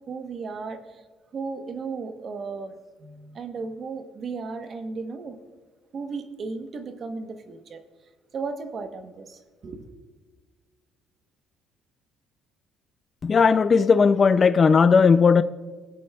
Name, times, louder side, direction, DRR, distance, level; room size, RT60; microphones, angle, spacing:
voice 1, 0.1-1.0 1.3-5.4 5.9-7.8 8.3-9.8, right 4 dB, 40° right, 0.9 m, -35 dB
voice 2, 13.2-15.4, left 5 dB, 30° left, 0.3 m, -17 dB
19.0 x 8.3 x 2.3 m
cardioid pair, 125°, 0 cm